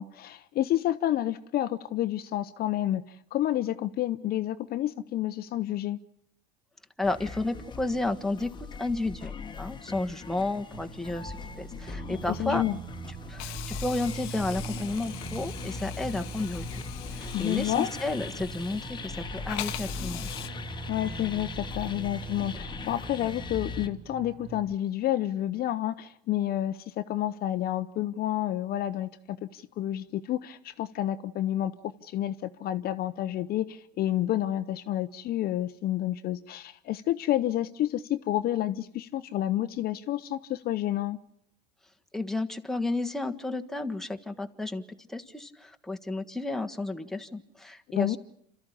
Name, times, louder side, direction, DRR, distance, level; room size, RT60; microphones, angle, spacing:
voice 1, 0.0-6.0 12.1-12.8 17.3-17.9 20.9-31.7 32.0-41.2 47.9-48.2, left 13 dB, 45° left, 0.8 m, -29 dB
sound 1, 7.0-23.9, left 4 dB, 20° left, 1.4 m, -40 dB
voice 2, 7.0-8.5 8.8-12.6 13.3-16.8 17.1-20.3 42.1-48.2, left 2 dB, ahead, 1.5 m, -32 dB
sound 2, 10.7-24.7, right 6 dB, 35° right, 1.1 m, -42 dB
Hiss, 13.4-19.1 19.5-20.5, left 18 dB, 70° left, 1.1 m, -42 dB
27.5 x 13.5 x 10.0 m
supercardioid pair, 100°, 21 cm